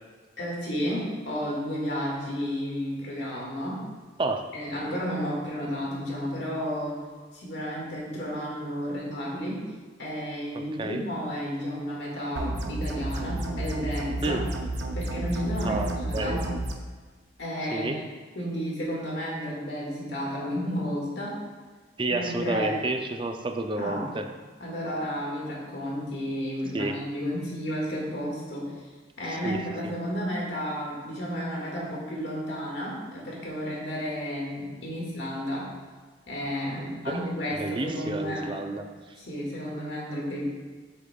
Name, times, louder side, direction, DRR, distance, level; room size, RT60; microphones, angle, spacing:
voice 1, 0.4-3.8 4.5-7.0 7.3-9.6 10.0-14.4 14.9-16.4 17.4-18.0 18.4-21.3 22.1-22.8 23.8-24.1 24.6-28.7 29.2-35.7 36.3-38.5 39.2-40.4, equal, 75° left, -4 dB, 1.9 m, -32 dB
sound 1, 12.4-16.7, right 1 dB, 75° right, 0.6 m, -31 dB
voice 2, 15.6-16.4 17.7-18.0 22.0-24.3 26.7-27.0 29.3-29.9 37.1-38.9, right 2 dB, 30° right, 5 dB, 0.5 m, -30 dB
7.3 x 6.5 x 2.3 m, 1.4 s
head